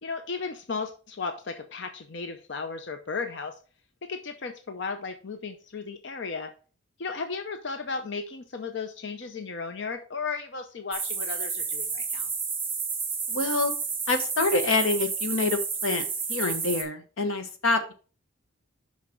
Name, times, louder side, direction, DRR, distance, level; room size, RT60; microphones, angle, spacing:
voice 1, 0.0-3.5 4.0-6.5 7.0-12.3, left 4 dB, 55° left, 7 dB, 0.6 m, -35 dB
sound 1, 10.9-16.8, right 5 dB, 10° right, 1.1 m, -31 dB
voice 2, 13.3-13.7 14.1-17.9, left 3 dB, 85° left, 8 dB, 1.1 m, -26 dB
6.1 x 5.7 x 4.5 m, 0.37 s
head